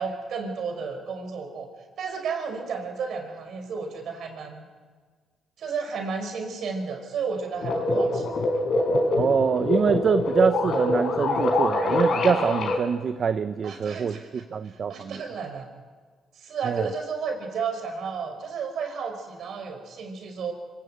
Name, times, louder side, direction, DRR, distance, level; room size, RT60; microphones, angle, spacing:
voice 1, 0.0-1.7 2.0-4.6 5.6-8.3 13.6-15.7 16.3-20.5, right 5 dB, 65° right, 5 dB, 5.2 m, -32 dB
sound 1, 7.6-12.8, left 2 dB, 60° left, 3.9 m, -24 dB
voice 2, 9.1-14.2 14.5-15.2 16.6-16.9, right 6 dB, 50° right, 11 dB, 0.7 m, -25 dB
25.5 x 17.0 x 8.6 m, 1.5 s
cardioid pair, 90°, 0 cm